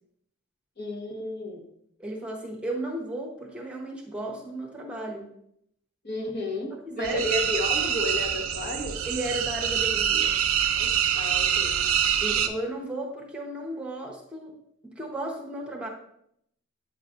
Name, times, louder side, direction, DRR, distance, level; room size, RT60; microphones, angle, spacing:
voice 1, 0.8-1.7 6.0-9.0 10.7-11.7, left 1 dB, 50° left, 2 dB, 1.1 m, -32 dB
voice 2, 2.0-5.3 6.7-7.2 9.0-10.4 12.2-14.6 14.8-15.9, right 1 dB, 5° right, -1 dB, 0.8 m, -34 dB
sound 1, 7.0-12.5, right 8 dB, 90° right, 0.6 m, -25 dB
8.4 x 5.7 x 2.5 m, 0.73 s
head